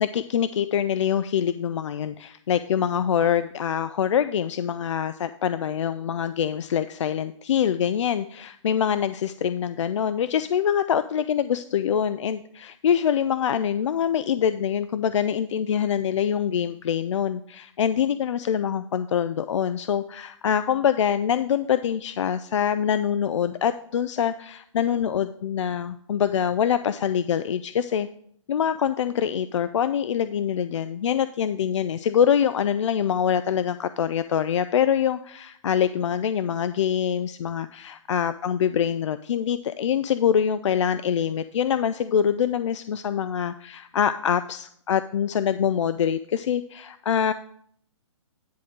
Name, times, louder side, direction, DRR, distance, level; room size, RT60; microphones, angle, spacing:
voice 1, 0.0-28.1 28.5-47.3, left 8 dB, 70° left, 13 dB, 0.4 m, -24 dB
10.0 x 3.7 x 6.3 m, 0.65 s
hypercardioid pair, 160°, 16 cm